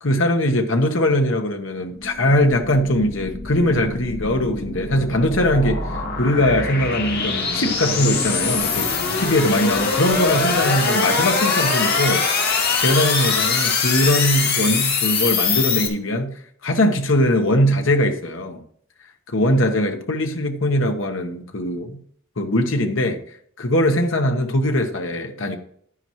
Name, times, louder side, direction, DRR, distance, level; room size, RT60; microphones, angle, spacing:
voice 1, 0.0-8.9 9.1-12.3 12.8-16.3 16.6-18.6 19.3-22.0 22.4-23.2 23.6-25.6, left 1 dB, 70° left, 1.3 m, -21 dB
sound 1, 2.0-15.9, left 4 dB, 50° left, 1.9 m, -23 dB
10.5 x 9.9 x 3.2 m
head